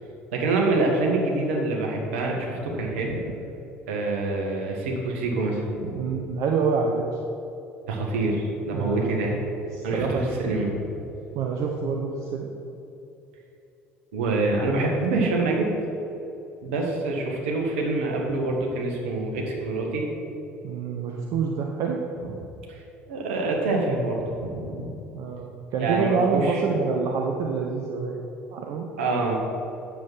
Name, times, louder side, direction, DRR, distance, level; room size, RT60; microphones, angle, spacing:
voice 1, 0.3-3.3 3.9-6.2 7.9-9.4 9.8-10.9 14.1-15.7 16.6-20.0 22.7-22.8 23.1-24.9 25.8-26.6 29.0-29.4, right 2 dB, 75° right, 0 dB, 1.8 m, -26 dB
voice 2, 6.0-7.0 8.7-9.2 9.7-10.4 11.3-12.5 20.6-22.0 25.1-28.2 28.5-28.9, right 5 dB, 55° right, 1 dB, 0.9 m, -27 dB
8.9 x 7.4 x 5.6 m, 2.9 s
figure-of-eight pair, 60°, 7 cm